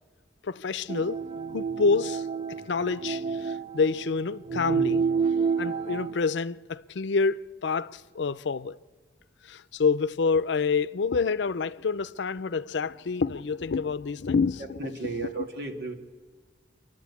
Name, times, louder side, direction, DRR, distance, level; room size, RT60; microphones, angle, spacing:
voice 1, 0.4-5.1 5.6-8.8 9.4-15.1 15.4-15.5, left 4 dB, 75° left, 0.5 m, -28 dB
sound 1, 0.9-6.1, right 5 dB, 30° right, 0.5 m, -29 dB
voice 2, 14.8-15.9, right 3 dB, 65° right, 2.2 m, -34 dB
28.0 x 12.0 x 8.3 m
head